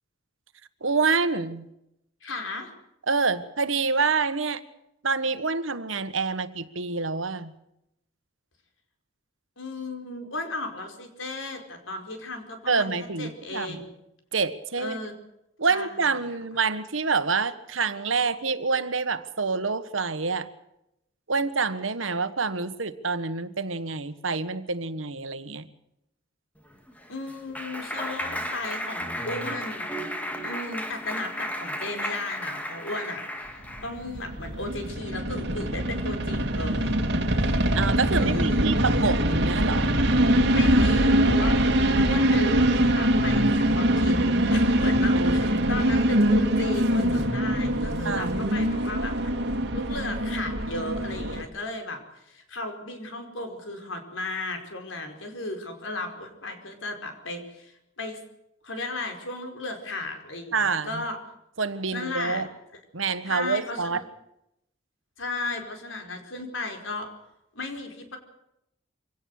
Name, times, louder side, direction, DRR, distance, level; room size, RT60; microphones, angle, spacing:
voice 1, 0.8-1.7 3.1-4.6 5.0-7.5 12.7-13.8 14.3-15.0 15.6-20.5 21.3-25.6 37.7-40.0 45.2-46.1 48.0-48.4 60.5-61.0 61.6-62.5 62.9-64.0, right 4 dB, 85° right, 12 dB, 1.5 m, -27 dB
voice 2, 2.2-2.7 9.6-13.9 14.8-15.1 15.7-16.1 27.1-29.9 30.4-33.2 33.8-37.0 38.1-38.7 40.5-41.6 42.0-44.1 44.5-49.4 49.7-58.2 58.6-61.2 61.9-62.4 63.3-64.0 65.2-67.1 67.5-68.2, left 2 dB, 80° left, 5 dB, 5.0 m, -35 dB
Clapping, 26.7-34.0, equal, 10° left, 2.4 m, -34 dB
sound 1, 33.8-51.4, right 1 dB, 60° right, 2.5 m, -23 dB
25.0 x 17.5 x 6.7 m, 0.83 s
head